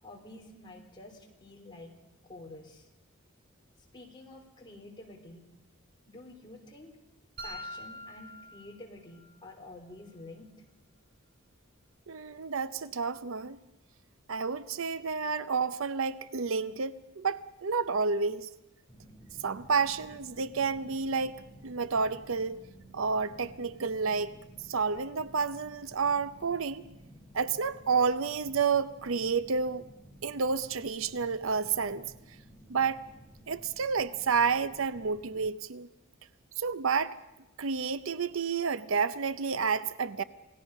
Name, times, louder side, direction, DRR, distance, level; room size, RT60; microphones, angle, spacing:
voice 1, 0.0-1.9 2.3-2.9 3.9-5.5 6.1-6.9 7.4-10.5, left 2 dB, 20° left, 3.3 m, -49 dB
sound 1, 7.4-9.4, equal, 45° right, 3.4 m, -44 dB
voice 2, 12.1-13.6 14.3-18.5 19.4-22.6 22.9-24.3 24.7-26.8 27.3-29.9 30.2-32.1 32.7-33.0 33.5-35.9 36.6-37.2 37.6-40.2, right 5 dB, 70° right, 0.6 m, -30 dB
sound 2, 18.9-35.5, equal, 15° right, 2.7 m, -54 dB
27.5 x 17.5 x 5.4 m
head